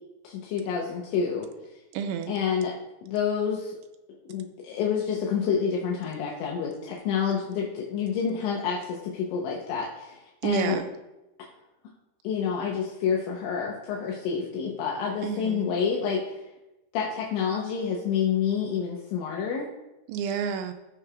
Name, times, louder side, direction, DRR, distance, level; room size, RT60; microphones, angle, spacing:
voice 1, 0.2-1.5 2.3-2.7 3.0-3.7 4.3-10.8 12.2-16.3 16.9-19.7, left 7 dB, 80° left, -2 dB, 3.2 m, -28 dB
voice 2, 1.9-2.3 10.4-10.9 15.2-15.6 20.1-20.7, right 7 dB, 85° right, 6 dB, 3.0 m, -29 dB
14.5 x 6.7 x 2.4 m, 0.96 s
omnidirectional pair, 5.4 m